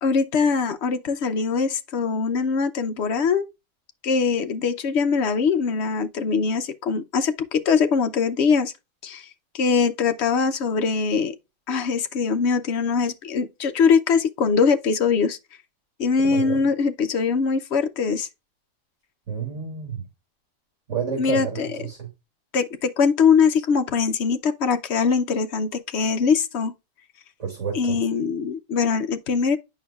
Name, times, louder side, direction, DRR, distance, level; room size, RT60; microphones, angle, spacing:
voice 1, 0.0-3.5 4.0-8.7 9.0-9.3 9.5-11.4 11.7-15.4 16.0-18.3 21.2-21.7 22.5-26.7 27.7-29.6, left 5 dB, 60° left, 0.9 m, -22 dB
voice 2, 16.2-16.6 19.3-20.0 20.9-22.1 27.4-28.0, right 6 dB, 60° right, 2.7 m, -30 dB
8.5 x 5.8 x 2.3 m
omnidirectional pair, 1.4 m